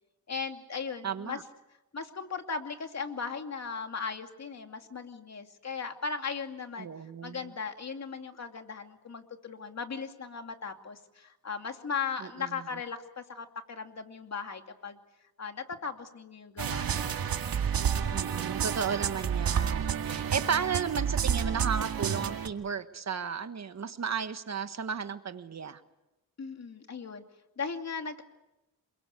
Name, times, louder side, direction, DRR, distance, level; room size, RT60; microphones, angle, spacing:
voice 1, 0.3-1.4 1.9-6.9 7.2-15.0 15.4-17.2 26.4-27.2 27.6-28.2, left 5 dB, 45° left, 5 dB, 2.6 m, -37 dB
voice 2, 1.0-1.4 6.8-7.5 12.2-12.5 18.1-25.8, right 6 dB, 45° right, 10 dB, 1.4 m, -34 dB
sound 1, 16.6-22.5, right 8 dB, 70° right, 2.1 m, -30 dB
28.0 x 22.5 x 8.3 m, 0.95 s
cardioid pair, 100°, 36 cm